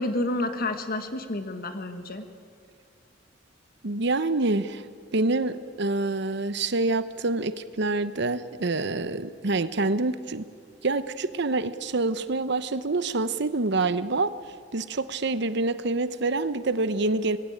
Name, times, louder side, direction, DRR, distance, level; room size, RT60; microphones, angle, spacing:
voice 1, 0.0-2.2, left 2 dB, 50° left, 8 dB, 1.6 m, -29 dB
voice 2, 3.8-4.8 5.1-10.5 10.8-14.3 14.7-17.4, right 3 dB, 65° right, 13 dB, 1.0 m, -26 dB
25.5 x 20.0 x 8.7 m, 2.3 s
head